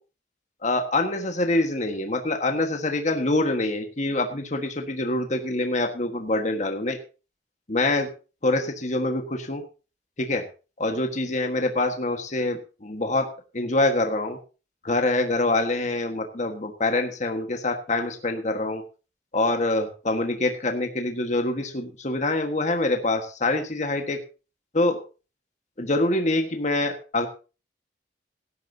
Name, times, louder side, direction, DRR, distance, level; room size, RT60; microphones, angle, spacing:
voice 1, 0.6-7.0 7.7-8.1 8.4-9.6 10.2-10.4 10.8-13.3 13.5-14.4 14.8-18.8 19.3-24.2 24.7-25.0 25.8-27.3, left 2 dB, 45° left, 4 dB, 1.6 m, -25 dB
17.5 x 11.5 x 2.8 m, 0.33 s
head